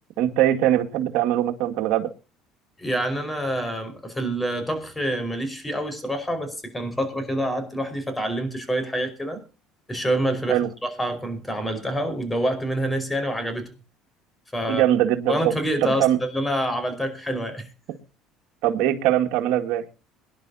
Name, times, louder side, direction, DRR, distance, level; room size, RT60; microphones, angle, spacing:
voice 1, 0.2-2.1 10.5-10.7 14.7-15.5 15.8-16.2 18.6-19.8, right 12 dB, 75° right, 4 dB, 2.1 m, -21 dB
voice 2, 2.8-9.4 9.9-13.7 14.5-14.8 15.3-17.7, equal, 10° left, 8 dB, 4.8 m, -27 dB
23.5 x 11.0 x 2.8 m, 0.33 s
supercardioid pair, 105°, 0 cm